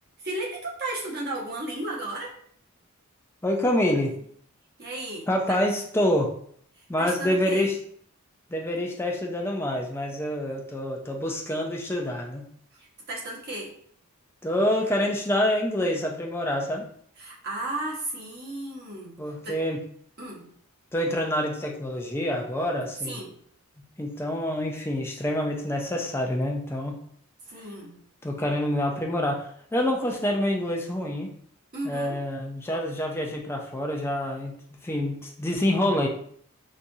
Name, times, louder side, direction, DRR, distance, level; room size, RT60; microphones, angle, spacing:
voice 1, 0.2-2.3 4.8-5.6 6.8-7.7 12.7-13.7 17.2-19.2 19.4-19.6 20.2-20.5 23.0-23.3 27.5-27.9 31.7-32.2, right 1 dB, 45° right, -3 dB, 1.0 m, -34 dB
voice 2, 3.4-4.2 5.3-6.3 6.9-7.8 8.5-12.4 14.4-16.9 19.2-19.8 20.9-23.2 24.0-27.0 28.2-31.3 31.8-34.6 34.8-36.1, left 1 dB, 10° left, 0 dB, 0.4 m, -27 dB
4.1 x 2.4 x 2.6 m, 0.62 s
head